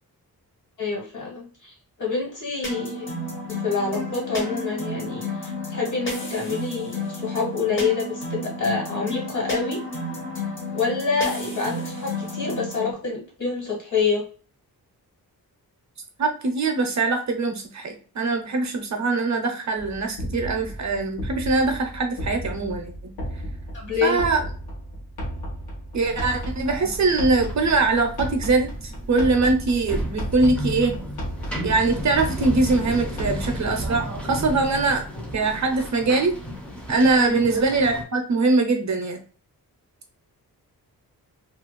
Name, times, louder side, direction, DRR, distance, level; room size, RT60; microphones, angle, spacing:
voice 1, 0.8-3.1 3.6-9.8 10.7-14.2 23.7-24.2 37.2-37.4, left 4 dB, 50° left, -3 dB, 1.4 m, -27 dB
sound 1, 2.6-12.9, left 1 dB, 30° left, 0.8 m, -32 dB
voice 2, 16.2-23.1 24.0-24.4 25.9-31.0 31.6-35.0 35.3-36.3 36.9-39.2, right 3 dB, 50° right, 4 dB, 0.5 m, -22 dB
sound 2, 19.8-34.1, equal, 80° left, 0.9 m, -34 dB
sound 3, 26.0-38.0, equal, 5° left, 0.5 m, -34 dB
2.6 x 2.4 x 3.0 m, 0.40 s
wide cardioid pair, 170°, 38 cm